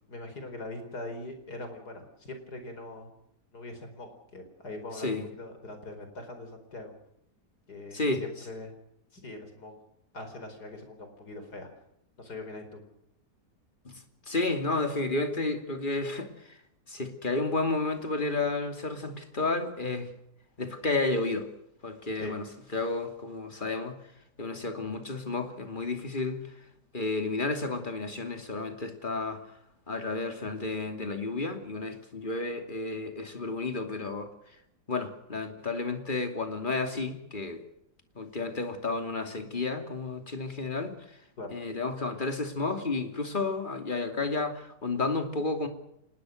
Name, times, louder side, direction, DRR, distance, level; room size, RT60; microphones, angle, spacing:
voice 1, 0.1-3.1 3.5-6.9 7.7-8.7 9.1-9.8 10.1-11.7 12.2-12.8 22.1-22.4 41.4-41.5, left 2 dB, 70° left, 6 dB, 5.2 m, -42 dB
voice 2, 13.8-16.6 16.9-20.1 20.6-21.5 21.8-22.5 22.7-24.0 24.4-26.4 26.9-29.4 29.9-34.3 34.9-37.6 38.2-41.0 41.5-45.7, left 3 dB, 30° left, 6 dB, 2.8 m, -31 dB
26.0 x 20.0 x 6.5 m, 0.77 s
omnidirectional pair, 1.8 m